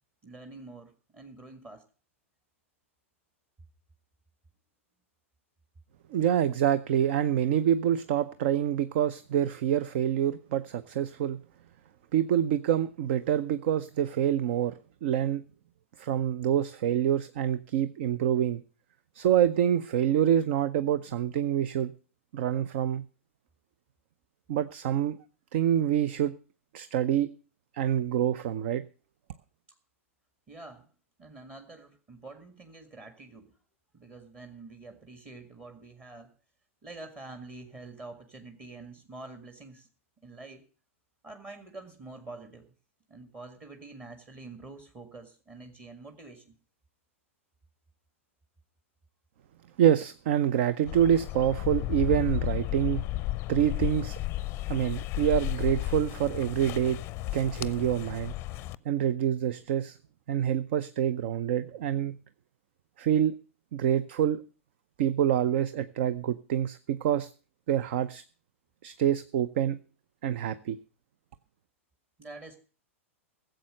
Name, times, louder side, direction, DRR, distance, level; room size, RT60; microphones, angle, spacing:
voice 1, 0.2-1.8 30.5-30.9 31.2-33.5 33.9-36.3 36.8-39.9 40.2-40.7 41.2-42.7 43.1-46.6 72.2-72.6, right 3 dB, 25° right, 1.8 m, -46 dB
voice 2, 6.1-11.4 12.1-14.7 15.0-15.4 16.0-18.6 19.1-21.9 22.3-23.0 24.5-25.2 25.5-26.4 26.7-27.3 27.7-28.8 49.8-53.0 53.5-54.2 54.7-57.0 57.3-58.3 58.9-60.0 60.3-62.2 63.0-63.3 63.7-64.4 65.0-67.3 67.7-68.2 68.8-69.8 70.2-70.8, right 10 dB, 55° right, 0.6 m, -26 dB
sound 1, 50.9-58.8, left 17 dB, 35° left, 0.5 m, -33 dB
15.5 x 7.8 x 6.4 m
figure-of-eight pair, 105°, 7 cm